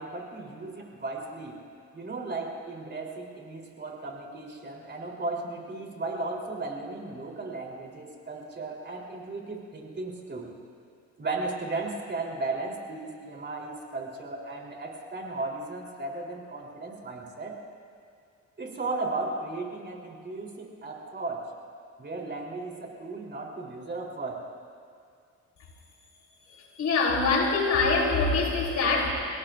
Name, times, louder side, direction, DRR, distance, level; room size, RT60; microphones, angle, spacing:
voice 1, 0.0-1.6 1.9-10.5 11.2-17.6 18.6-21.5 22.0-24.4, right 3 dB, 35° right, -1 dB, 3.6 m, -35 dB
voice 2, 26.5-29.1, left 3 dB, 65° left, -2 dB, 3.8 m, -24 dB
30.0 x 17.5 x 2.6 m, 2.3 s
cardioid pair, 90°, 30 cm